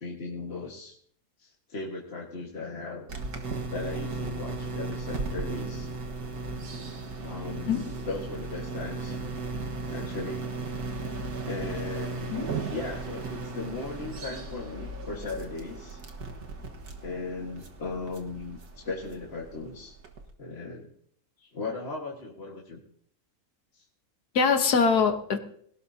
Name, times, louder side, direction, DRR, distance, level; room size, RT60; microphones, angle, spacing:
voice 1, 0.0-1.0 1.4-3.4 3.7-5.9 7.2-9.2 9.9-10.4 11.5-12.4 12.7-16.0 17.0-20.0 20.4-20.9 21.4-22.8 23.7-23.8, left 3 dB, 40° left, -2 dB, 1.9 m, -37 dB
sound 1, 3.1-20.3, right 3 dB, 80° right, 2.0 m, -36 dB
voice 2, 7.5-7.8 12.3-12.5 24.4-25.4, left 5 dB, 85° left, 7 dB, 1.8 m, -23 dB
20.5 x 18.0 x 2.8 m, 0.65 s
omnidirectional pair, 1.6 m